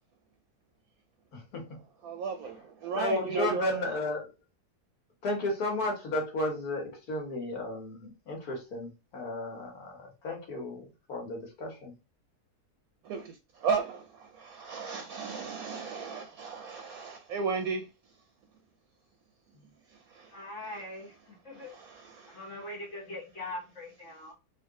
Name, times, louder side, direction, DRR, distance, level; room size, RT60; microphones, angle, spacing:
voice 1, 1.3-1.7 2.9-4.3 5.2-11.9, left 1 dB, 70° left, 1.7 m, -33 dB
voice 2, 2.0-2.5 2.8-3.7 13.1-13.2 13.6-14.0 14.4-17.8 21.7-21.9, right 5 dB, 70° right, 1.0 m, -33 dB
voice 3, 20.3-21.7 22.3-24.3, left 1 dB, 50° left, 1.4 m, -42 dB
3.4 x 3.0 x 3.6 m
omnidirectional pair, 1.7 m